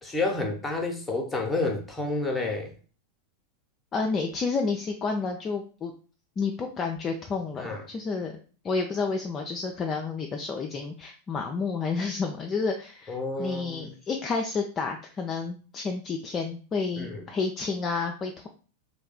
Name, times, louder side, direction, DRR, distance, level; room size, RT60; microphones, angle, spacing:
voice 1, 0.0-2.7 7.6-7.8 13.1-13.9 17.0-17.2, left 2 dB, 10° left, 2 dB, 0.7 m, -30 dB
voice 2, 3.9-5.9 6.4-8.3 8.6-18.5, left 4 dB, 25° left, 3 dB, 0.3 m, -30 dB
3.2 x 2.2 x 3.3 m, 0.39 s
figure-of-eight pair, 90°, 0 cm